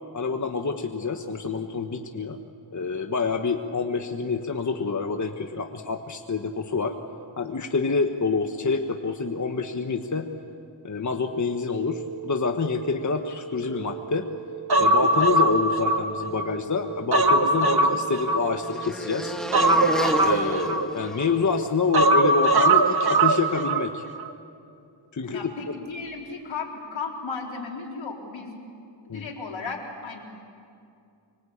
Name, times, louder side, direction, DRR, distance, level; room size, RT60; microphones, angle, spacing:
voice 1, 0.1-2.4 2.7-7.0 7.4-10.3 10.8-14.3 14.8-19.4 19.8-19.9 20.2-24.0 25.1-25.7 29.1-29.3, left 4 dB, 40° left, 5 dB, 1.4 m, -27 dB
sound 1, 11.6-24.1 25.8-25.9, right 7 dB, 20° right, 6.7 m, -40 dB
Human voice, 14.7-16.5 16.9-18.9 19.5-21.3 21.9-23.9 24.2-24.3, right 2 dB, 55° right, 1.7 m, -21 dB
sound 2, 17.5-21.7, equal, ahead, 2.0 m, -33 dB
voice 2, 25.3-28.6 29.1-30.2, left 4 dB, 75° left, 0 dB, 4.2 m, -35 dB
25.5 x 24.5 x 8.7 m, 2.5 s
cardioid pair, 80°, 46 cm